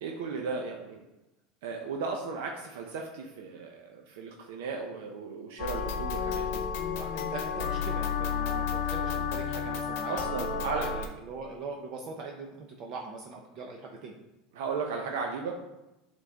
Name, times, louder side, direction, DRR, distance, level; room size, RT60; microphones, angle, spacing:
voice 1, 0.0-1.0 1.6-6.6 10.1-10.9 14.5-15.5, right 4 dB, 85° right, 2 dB, 0.7 m, -35 dB
sound 1, 5.6-11.1, left 6 dB, 65° left, 0.9 m, -31 dB
voice 2, 6.9-14.2, right 3 dB, 40° right, 1 dB, 0.7 m, -41 dB
8.4 x 3.8 x 3.6 m, 0.96 s
supercardioid pair, 165°, 0 cm